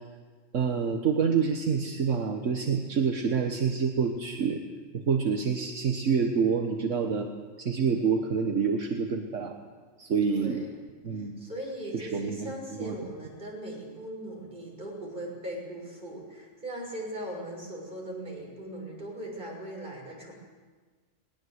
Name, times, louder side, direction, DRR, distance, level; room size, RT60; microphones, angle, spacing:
voice 1, 0.5-4.6 4.9-7.3 7.6-9.6 10.0-10.6 11.0-11.4 11.9-12.5 12.8-12.9, right 6 dB, 70° right, 4 dB, 1.6 m, -27 dB
voice 2, 10.3-10.7 11.1-20.3, right 1 dB, 40° right, -2 dB, 6.7 m, -39 dB
21.0 x 19.5 x 8.0 m, 1.4 s
omnidirectional pair, 1.3 m